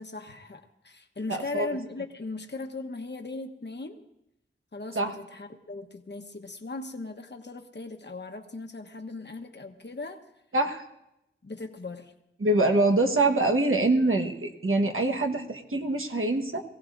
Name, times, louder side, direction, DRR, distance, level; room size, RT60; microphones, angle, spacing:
voice 1, 0.0-4.0 4.7-10.2 11.4-12.1, left 3 dB, 60° left, 5 dB, 1.1 m, -38 dB
voice 2, 1.3-1.7 4.9-5.1 10.5-10.8 12.4-16.6, right 2 dB, 85° right, 2 dB, 1.3 m, -24 dB
23.0 x 16.0 x 2.6 m, 0.86 s
wide cardioid pair, 50°, 21 cm